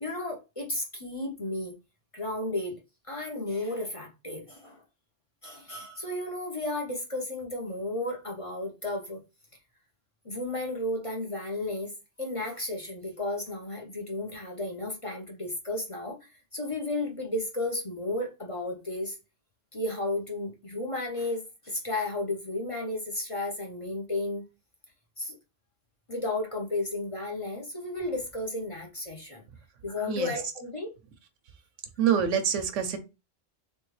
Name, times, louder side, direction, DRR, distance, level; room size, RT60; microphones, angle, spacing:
voice 1, 0.0-1.7 2.1-2.8 3.1-4.8 5.4-9.2 10.2-11.9 12.2-19.2 19.7-24.4 25.2-25.4 26.1-29.4 29.8-30.9, left 2 dB, 30° left, 0.9 m, -33 dB
voice 2, 32.0-33.0, right 8 dB, 80° right, 1.1 m, -25 dB
3.4 x 3.4 x 3.1 m
omnidirectional pair, 1.3 m